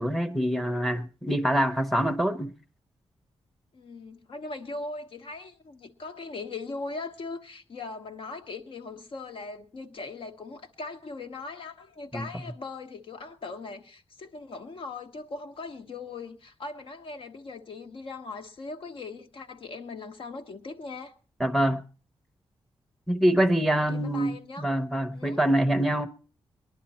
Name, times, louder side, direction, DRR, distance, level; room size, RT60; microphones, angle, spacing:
voice 1, 0.0-2.5 12.1-12.3 21.4-21.8 23.1-26.1, right 1 dB, ahead, 0.9 m, -25 dB
voice 2, 3.7-21.1 23.9-24.7 25.1-25.4, left 3 dB, 60° left, 1.3 m, -39 dB
20.5 x 11.0 x 4.3 m
wide cardioid pair, 145°, 10 cm